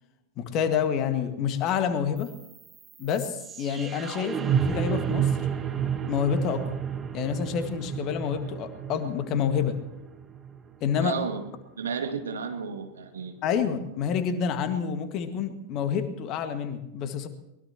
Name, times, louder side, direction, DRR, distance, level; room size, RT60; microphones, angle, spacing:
voice 1, 0.4-2.3 3.0-5.3 6.1-6.7 7.1-9.8 10.8-11.2 13.4-17.3, left 7 dB, 35° left, 8 dB, 1.9 m, -28 dB
sound 1, 2.2-12.2, right 8 dB, 20° right, 1.4 m, -31 dB
voice 2, 11.0-11.5 11.8-13.3, right 6 dB, 70° right, 5 dB, 2.2 m, -32 dB
23.0 x 20.5 x 3.0 m, 0.92 s
figure-of-eight pair, 90°, 0 cm